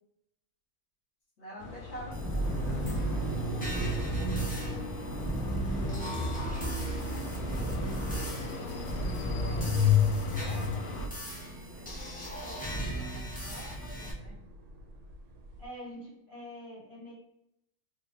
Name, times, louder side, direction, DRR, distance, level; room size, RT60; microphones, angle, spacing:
voice 1, 1.4-3.7 7.6-9.8 10.2-14.4, equal, 50° left, -6 dB, 1.2 m, -49 dB
sound 1, 1.6-11.1, left 2 dB, 90° left, 1.1 m, -40 dB
sound 2, 2.1-14.1, left 3 dB, 10° left, 0.5 m, -32 dB
sound 3, 2.4-15.7, right 2 dB, 80° right, 1.1 m, -42 dB
voice 2, 7.0-7.7 15.6-17.1, equal, 35° right, -6 dB, 1.5 m, -46 dB
3.2 x 3.2 x 2.5 m, 0.79 s
omnidirectional pair, 1.6 m